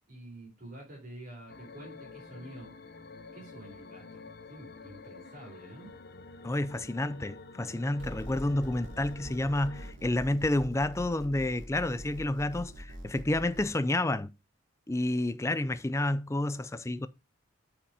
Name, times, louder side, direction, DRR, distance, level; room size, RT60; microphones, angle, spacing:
voice 1, 0.1-2.7 3.3-5.9, right 1 dB, 45° right, 4.2 m, -48 dB
sound 1, 1.5-9.9, left 3 dB, 50° left, 0.9 m, -49 dB
voice 2, 6.4-14.3 14.9-17.1, left 1 dB, 15° left, 0.4 m, -30 dB
sound 2, 8.0-13.6, right 1 dB, 60° right, 3.0 m, -44 dB
8.6 x 5.1 x 4.9 m
head